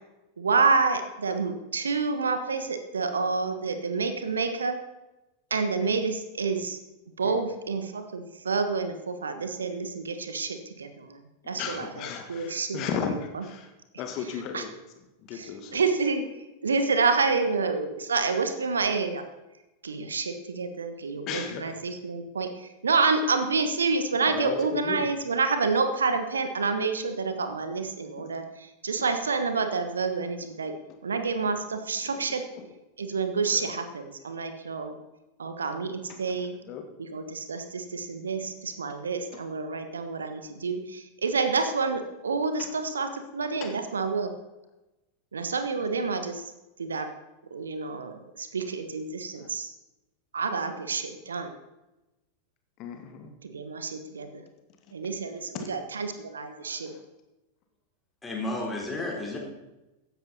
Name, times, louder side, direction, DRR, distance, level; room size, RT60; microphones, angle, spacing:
voice 1, 0.4-4.8 5.5-6.8 7.2-11.2 11.5-11.9 12.3-12.8 14.5-14.6 15.7-16.2 16.6-19.2 19.8-28.4 28.8-30.7 31.0-32.5 33.0-35.0 35.4-36.6 37.1-44.3 45.3-46.4 46.8-47.1 47.5-49.7 50.3-51.5 53.4-54.4 54.9-56.9, right 4 dB, 70° right, 8 dB, 1.3 m, -28 dB
voice 2, 11.6-13.7 14.0-14.7 15.2-15.8 21.3-21.8 24.2-25.1 28.9-29.0 30.9-31.0 32.0-32.7 33.5-33.8 36.1-36.8 39.3-39.5 42.6-42.8 43.6-43.8 49.3-49.5 52.8-53.3 55.5-55.7 56.6-57.0, left 6 dB, 40° left, 5 dB, 1.8 m, -36 dB
voice 3, 58.2-59.4, left 2 dB, 10° left, -1 dB, 3.8 m, -32 dB
15.5 x 10.5 x 4.2 m, 0.99 s
figure-of-eight pair, 90°, 0 cm